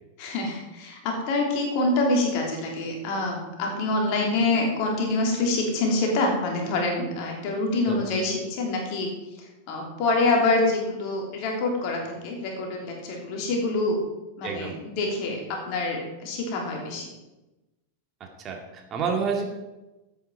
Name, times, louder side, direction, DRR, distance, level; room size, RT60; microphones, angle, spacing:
voice 1, 0.2-9.1 9.4-14.0 14.4-17.1, left 2 dB, 45° left, 0 dB, 3.3 m, -26 dB
voice 2, 14.4-14.7 18.4-19.4, right 5 dB, 30° right, 2 dB, 2.2 m, -28 dB
13.5 x 8.4 x 4.7 m, 1.0 s
figure-of-eight pair, 90°, 0 cm